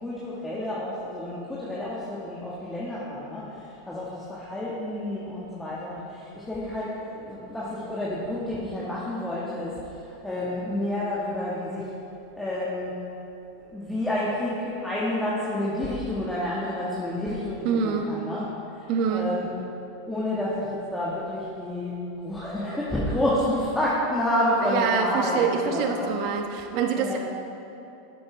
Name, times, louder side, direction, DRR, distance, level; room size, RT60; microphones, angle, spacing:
voice 1, 0.0-3.4 3.9-9.7 10.2-11.8 12.4-12.9 13.7-18.5 19.1-19.5 20.1-21.9 22.2-26.1 27.0-27.2, left 1 dB, 10° left, -8 dB, 1.7 m, -29 dB
voice 2, 17.6-18.1 18.9-19.3 24.7-27.2, right 6 dB, 55° right, 4 dB, 1.0 m, -25 dB
9.9 x 8.1 x 3.4 m, 2.8 s
hypercardioid pair, 105°, 0 cm